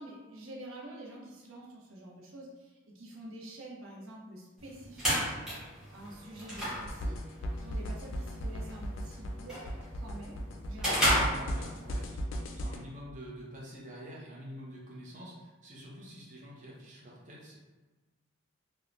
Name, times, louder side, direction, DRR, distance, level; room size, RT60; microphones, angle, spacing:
voice 1, 0.0-5.3 5.9-7.2 7.6-9.6 10.0-11.7, right 1 dB, 85° right, -3 dB, 0.6 m, -47 dB
sound 1, 4.6-12.1, equal, 5° right, 0.9 m, -34 dB
sound 2, 6.8-12.8, equal, 70° left, 0.3 m, -36 dB
voice 2, 11.1-17.6, equal, 40° right, -5 dB, 0.6 m, -47 dB
3.1 x 2.1 x 2.4 m, 1.2 s
head